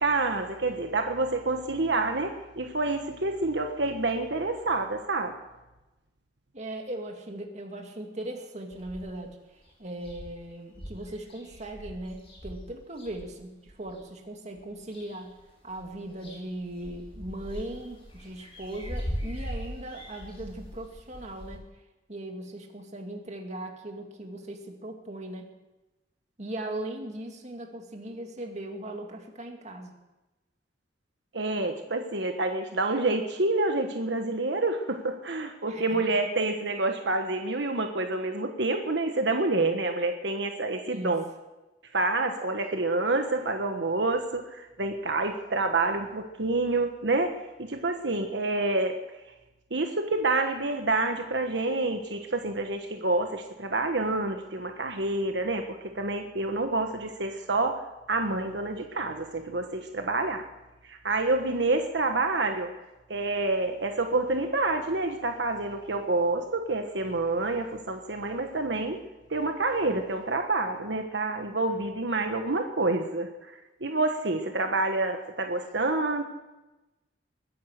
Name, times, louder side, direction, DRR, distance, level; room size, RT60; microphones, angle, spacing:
voice 1, 0.0-5.4 31.3-41.3 41.9-49.0 49.7-57.8 58.1-60.4 60.8-62.7 63.1-69.0 69.3-76.2, right 2 dB, 80° right, 5 dB, 1.4 m, -28 dB
voice 2, 6.5-15.3 15.6-21.7 22.1-25.5 26.4-29.9 35.7-36.0 40.9-41.1, right 1 dB, 40° right, 3 dB, 2.3 m, -39 dB
sound 1, 8.7-9.3 9.7-9.8 10.0-14.0 14.6-15.4 15.7-21.6, equal, 35° left, 5.3 m, -40 dB
21.0 x 10.5 x 6.7 m, 1.0 s
head